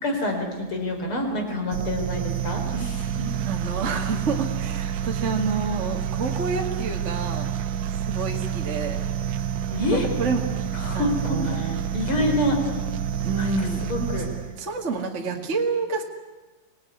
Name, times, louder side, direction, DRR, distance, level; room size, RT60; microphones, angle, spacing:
voice 1, 0.0-3.3 9.7-10.1 10.8-12.6 13.4-13.5 13.9-14.3, left 1 dB, 45° left, 3 dB, 5.1 m, -27 dB
sound 1, 1.7-14.7, right 9 dB, 85° right, 2.3 m, -28 dB
voice 2, 3.5-7.5 7.9-9.0 9.8-10.4 10.9-11.8 13.2-13.8 14.6-16.0, right 4 dB, 25° right, 2 dB, 1.9 m, -28 dB
25.0 x 19.0 x 9.5 m, 1.3 s
omnidirectional pair, 3.3 m